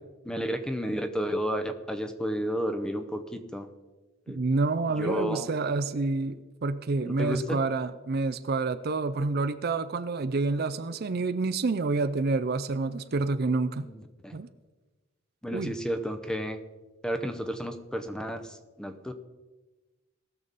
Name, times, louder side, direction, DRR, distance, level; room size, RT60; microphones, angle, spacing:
voice 1, 0.2-3.7 4.3-4.4 4.9-5.5 7.0-7.6 13.7-14.4 15.4-16.6 17.0-19.1, equal, 5° left, 8 dB, 0.7 m, -32 dB
voice 2, 4.3-13.9 14.3-14.5 15.5-15.7, right 3 dB, 50° right, 12 dB, 0.5 m, -28 dB
19.0 x 6.9 x 4.0 m, 1.2 s
head